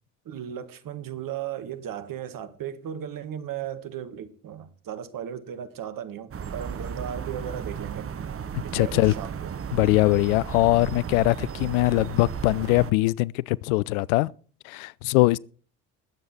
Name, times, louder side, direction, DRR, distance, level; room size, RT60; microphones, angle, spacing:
voice 1, 0.2-8.1 8.6-9.5, right 9 dB, 50° right, 1.6 m, -36 dB
sound 1, 6.3-12.9, right 7 dB, 30° right, 1.0 m, -35 dB
voice 2, 8.5-9.1 9.7-14.3 14.6-15.4, left 20 dB, 70° left, 0.5 m, -22 dB
20.0 x 8.1 x 4.4 m
figure-of-eight pair, 50°, 44 cm